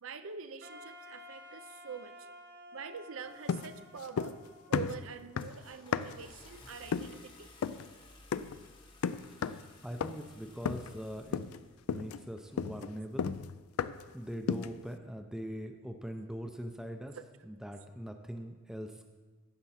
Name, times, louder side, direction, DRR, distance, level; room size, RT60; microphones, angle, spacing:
voice 1, 0.0-2.1 2.7-4.3 4.7-7.5 17.2-17.3, right 6 dB, 65° right, 11 dB, 0.5 m, -45 dB
Wind instrument woodwind instrument, 0.6-5.6, left 1 dB, 50° right, 1.0 m, -53 dB
sound 1, 3.5-4.5 4.7-6.3 6.9-7.2 7.6-7.9 8.3-8.6 9.0-9.7 10.0-10.3 10.7-11.0 11.3-11.6 11.9-14.1 14.5-14.8, left 6 dB, 80° left, 0.3 m, -35 dB
Car / Engine starting, 5.0-12.0, left 2 dB, 20° left, 0.9 m, -57 dB
voice 2, 9.3-11.4 11.9-13.3 14.1-17.2 17.4-19.1, equal, ahead, 5 dB, 0.4 m, -42 dB
14.5 x 6.0 x 4.2 m, 1.3 s
head